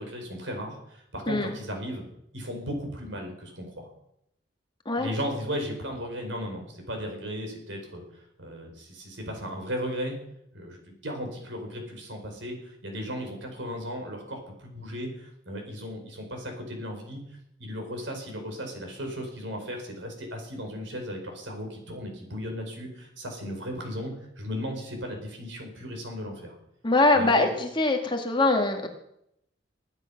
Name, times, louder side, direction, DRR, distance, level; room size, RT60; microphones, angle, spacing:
voice 1, 0.0-2.0 2.3-3.9 5.0-8.0 8.4-10.2 10.5-10.8 11.0-17.2 17.6-26.5 27.1-27.5, equal, 75° right, 3 dB, 5.1 m, -36 dB
voice 2, 1.3-1.6 4.9-5.1 26.8-28.9, left 2 dB, 25° left, 4 dB, 1.9 m, -23 dB
20.5 x 10.0 x 5.9 m, 0.78 s
head